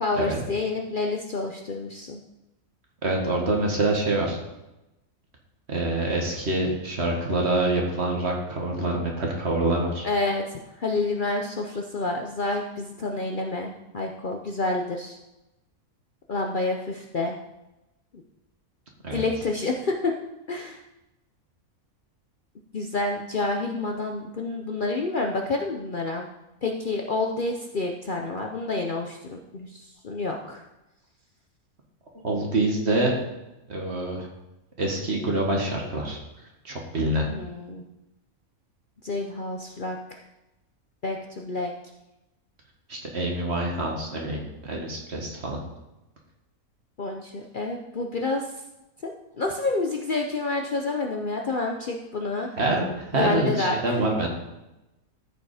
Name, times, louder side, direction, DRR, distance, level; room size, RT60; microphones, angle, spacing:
voice 1, 0.0-2.2 10.0-15.2 16.3-17.4 19.1-20.1 20.5-20.8 22.7-26.3 26.6-30.6 37.3-37.8 39.0-40.2 41.0-41.7 47.0-48.4 49.0-52.5 53.1-53.8, left 3 dB, 45° left, 1 dB, 0.7 m, -28 dB
voice 2, 3.0-4.4 5.7-10.1 19.0-19.2 32.1-33.2 33.7-34.3 34.8-36.2 36.6-37.2 42.9-45.6 52.6-54.3, right 2 dB, 50° right, 0 dB, 2.0 m, -26 dB
13.5 x 5.1 x 4.9 m, 0.96 s
omnidirectional pair, 1.5 m